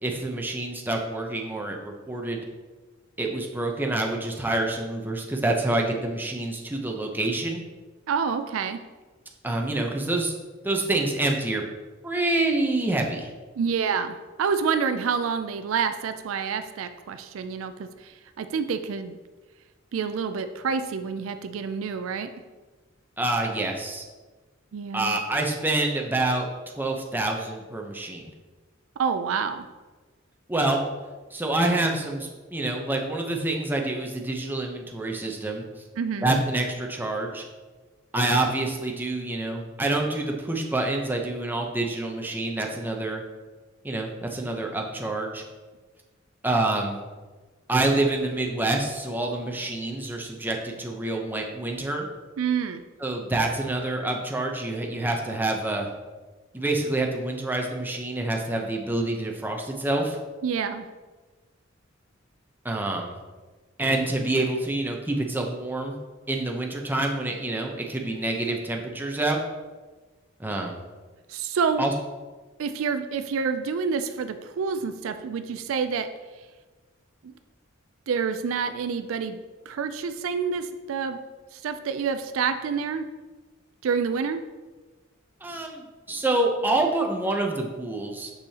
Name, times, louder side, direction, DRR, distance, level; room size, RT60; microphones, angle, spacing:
voice 1, 0.0-2.5 3.2-7.6 9.4-10.3 10.6-11.6 12.0-13.3 23.2-24.0 24.9-26.5 26.8-28.3 30.5-30.8 31.3-35.6 36.2-37.4 38.1-43.2 43.8-45.4 46.4-47.0 47.7-52.1 53.0-55.9 56.5-60.2 62.6-63.2 63.8-66.0 66.3-69.4 70.4-70.8 71.8-71.9 85.4-88.3, right 2 dB, 10° right, 1 dB, 0.7 m, -27 dB
voice 2, 8.1-8.8 13.6-19.2 19.9-22.3 24.7-25.2 29.0-29.7 36.0-36.3 52.4-52.8 60.4-60.9 71.3-71.9 72.6-76.1 77.2-77.3 78.1-79.4 79.7-81.2 81.5-83.1 83.8-84.4, right 6 dB, 75° right, 10 dB, 0.4 m, -28 dB
6.4 x 6.1 x 2.8 m, 1.3 s
head